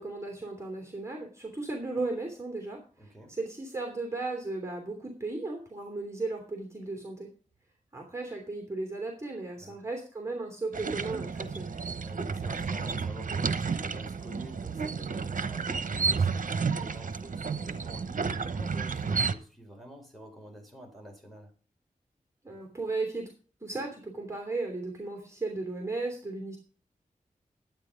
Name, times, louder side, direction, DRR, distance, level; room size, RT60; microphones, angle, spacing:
voice 1, 0.0-7.3 7.9-11.7 22.4-23.3 23.6-26.6, right 3 dB, 20° right, 1 dB, 3.0 m, -35 dB
voice 2, 3.0-3.4 9.6-9.8 12.0-21.5, equal, ahead, 1 dB, 4.3 m, -48 dB
sound 1, 10.7-19.3, right 5 dB, 70° right, 1.0 m, -31 dB
12.0 x 9.2 x 5.1 m, 0.39 s
wide cardioid pair, 105°, 14 cm